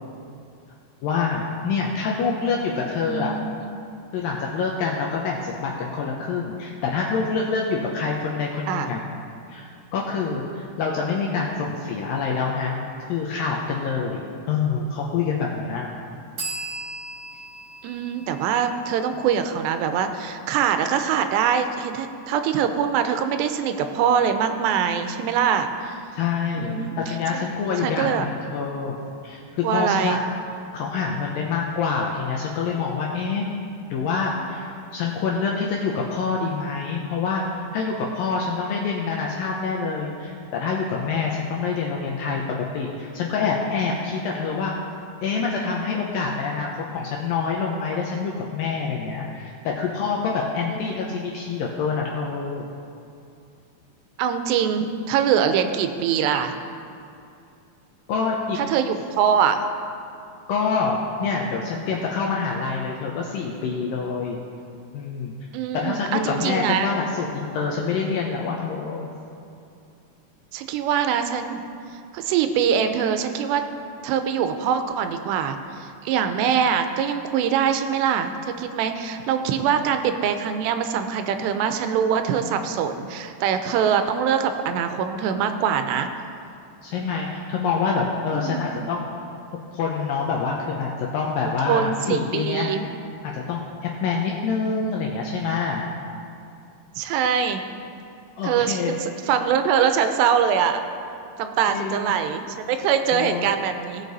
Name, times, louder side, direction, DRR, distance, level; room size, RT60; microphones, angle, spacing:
voice 1, 1.0-3.3 4.1-9.0 9.5-12.8 13.1-15.9 26.1-29.0 29.2-30.2 30.7-33.5 33.9-37.5 37.7-44.7 45.2-52.7 58.1-58.6 60.5-64.4 64.9-65.3 65.7-69.1 86.8-89.2 89.7-92.7 93.2-95.8 98.4-99.0 101.7-102.2 103.1-103.5, left 5 dB, 80° left, -1 dB, 2.1 m, -26 dB
voice 2, 3.1-3.8 8.7-8.9 17.8-26.0 26.6-27.4 27.8-28.3 29.6-30.2 50.6-50.8 54.2-56.5 58.6-59.6 65.5-66.9 70.5-71.6 72.1-73.6 74.0-86.1 88.3-88.9 91.7-92.9 97.0-97.6 98.4-99.0 99.3-100.8 101.4-104.0, right 8 dB, 90° right, 8 dB, 2.8 m, -23 dB
sound 1, 16.4-19.9, right 2 dB, 35° right, 2.5 m, -37 dB
17.5 x 6.7 x 4.0 m, 2.5 s
omnidirectional pair, 4.9 m